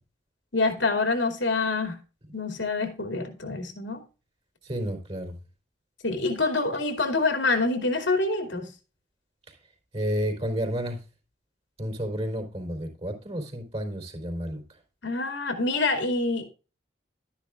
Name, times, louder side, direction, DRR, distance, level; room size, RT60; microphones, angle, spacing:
voice 1, 0.5-2.0 2.3-4.0 6.0-8.7 15.0-16.5, left 3 dB, 75° left, 2.6 m, -26 dB
voice 2, 4.6-5.4 9.5-9.6 9.9-11.0 11.8-14.6, equal, 30° right, 3.8 m, -31 dB
13.0 x 10.5 x 2.5 m
head